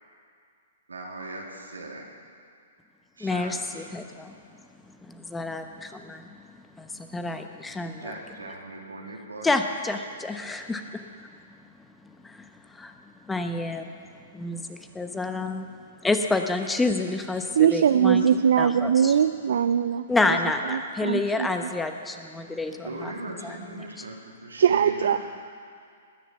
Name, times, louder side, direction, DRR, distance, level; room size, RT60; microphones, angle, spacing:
voice 1, 0.9-2.1 3.2-3.9 7.7-9.5 22.8-25.3, right 2 dB, 90° right, -1 dB, 2.7 m, -39 dB
voice 2, 3.2-8.1 9.4-11.3 11.6-15.7 16.0-18.2 18.6-19.2 20.1-23.1 23.4-24.0, left 3 dB, 10° left, 6 dB, 0.9 m, -30 dB
voice 3, 17.6-20.0 20.7-21.5 24.6-25.2, right 8 dB, 70° right, 11 dB, 0.4 m, -21 dB
20.5 x 7.2 x 7.2 m, 2.3 s
hypercardioid pair, 120°, 0 cm